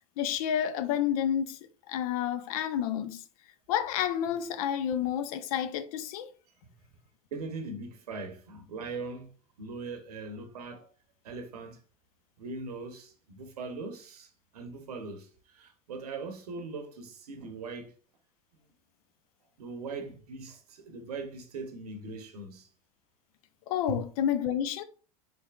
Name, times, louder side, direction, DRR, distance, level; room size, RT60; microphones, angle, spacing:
voice 1, 0.2-1.6 1.9-3.2 3.7-6.3 23.7-24.8, left 9 dB, 70° left, 0.5 m, -30 dB
voice 2, 7.3-9.3 9.6-10.9 11.2-11.8 12.4-17.9 19.6-22.7 23.9-24.0, right 3 dB, 90° right, 0.8 m, -40 dB
3.8 x 3.4 x 2.2 m
hypercardioid pair, 85°, 19 cm